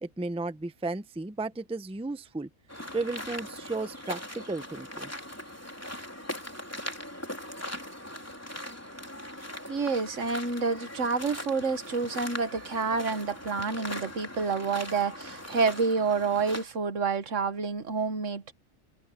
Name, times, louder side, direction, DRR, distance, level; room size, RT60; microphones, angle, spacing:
voice 1, 0.0-2.5 2.9-5.1, right 3 dB, 5° right, 0.6 m, -34 dB
sound 1, 2.7-16.6, left 1 dB, 10° left, 3.6 m, -40 dB
voice 2, 9.7-18.5, right 4 dB, 70° right, 1.7 m, -28 dB
omnidirectional pair, 1.3 m